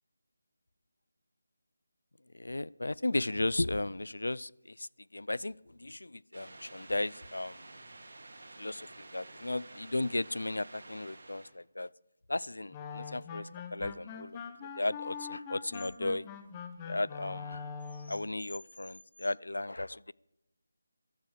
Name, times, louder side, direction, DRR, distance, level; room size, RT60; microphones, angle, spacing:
voice 1, 2.3-7.7 8.6-11.9 12.3-14.4 14.8-16.2 16.9-17.7 18.1-20.1, left 2 dB, 85° left, 23 dB, 0.4 m, -35 dB
sound 1, 6.3-11.5, right 2 dB, 65° right, 2.5 m, -51 dB
sound 2, 12.7-18.3, left 6 dB, 20° left, 1.0 m, -43 dB
15.5 x 12.0 x 4.9 m, 0.85 s
figure-of-eight pair, 165°, 0 cm